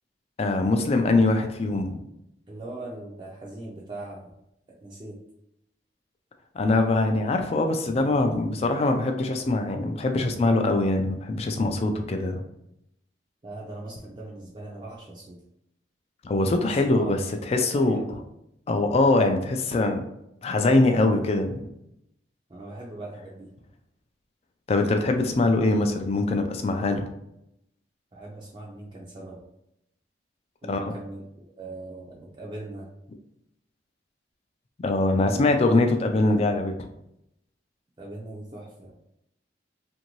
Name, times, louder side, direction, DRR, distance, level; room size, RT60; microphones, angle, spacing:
voice 1, 0.4-2.0 6.5-12.4 16.2-17.2 17.5-18.0 18.7-20.0 20.4-21.7 24.7-27.0 30.7-30.9 34.8-36.9, left 2 dB, 35° left, 5 dB, 0.3 m, -23 dB
voice 2, 2.5-4.3 4.8-5.2 13.4-15.4 16.6-17.1 17.6-18.2 22.5-23.5 28.1-29.4 30.6-31.2 31.6-32.9 35.2-35.5 38.0-38.9, right 2 dB, 25° right, -4 dB, 0.4 m, -40 dB
2.6 x 2.6 x 3.0 m, 0.80 s
head